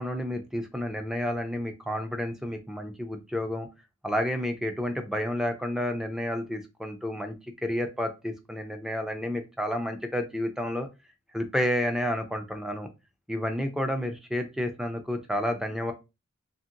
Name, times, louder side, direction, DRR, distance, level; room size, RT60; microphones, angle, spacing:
voice 1, 0.0-3.7 4.0-10.9 11.3-12.9 13.3-15.9, left 1 dB, ahead, 6 dB, 0.3 m, -30 dB
2.8 x 2.7 x 2.5 m, 0.26 s
head